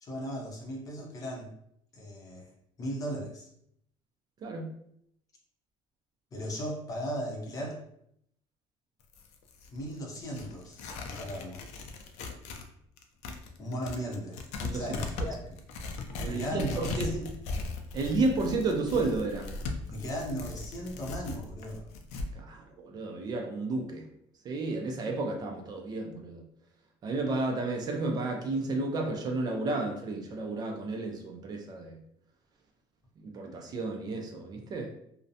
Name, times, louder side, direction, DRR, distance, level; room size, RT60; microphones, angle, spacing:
voice 1, 0.0-1.5 1.9-2.5 2.8-3.5 6.3-7.8 9.7-10.8 11.1-11.6 13.6-14.4 14.7-15.6 16.3-17.3 19.9-21.8, equal, 30° left, -1 dB, 0.6 m, -37 dB
Tearing, 9.0-12.7 13.0-22.3, left 3 dB, 75° left, 0.4 m, -38 dB
voice 2, 14.6-15.0 16.2-17.1 17.9-19.5 22.3-24.0 24.4-26.4 27.0-32.0 33.2-34.9, right 3 dB, 35° right, 2 dB, 0.4 m, -32 dB
2.5 x 2.0 x 2.6 m, 0.71 s
cardioid pair, 140°, 12 cm